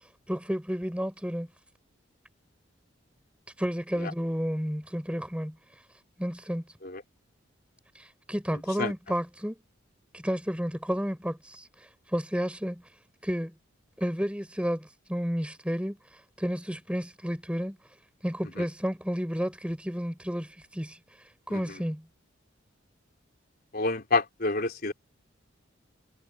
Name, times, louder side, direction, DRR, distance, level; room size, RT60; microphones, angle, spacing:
voice 1, 0.3-1.5 3.6-5.6 6.2-6.6 7.9-9.6 10.1-11.7 12.1-12.8 13.2-13.6 14.0-16.0 16.4-17.8 18.2-21.0 21.5-22.1, equal, 5° right, 4.7 m, -31 dB
voice 2, 23.7-24.9, left 3 dB, 50° left, 3.8 m, -28 dB
head